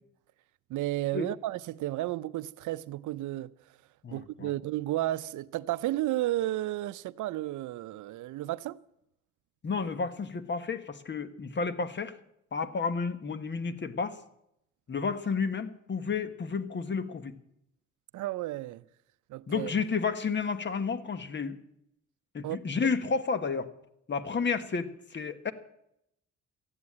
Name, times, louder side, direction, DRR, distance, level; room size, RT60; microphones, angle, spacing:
voice 1, 0.7-3.5 4.1-8.8 18.1-18.8 19.3-19.7 22.4-22.6, right 15 dB, 80° right, 0.6 m, -32 dB
voice 2, 4.0-4.5 9.6-12.2 12.5-14.2 14.9-17.4 19.5-21.6 22.3-23.7 24.1-25.5, left 5 dB, 35° left, 1.2 m, -31 dB
14.0 x 9.6 x 8.5 m
cardioid pair, 90°, 30 cm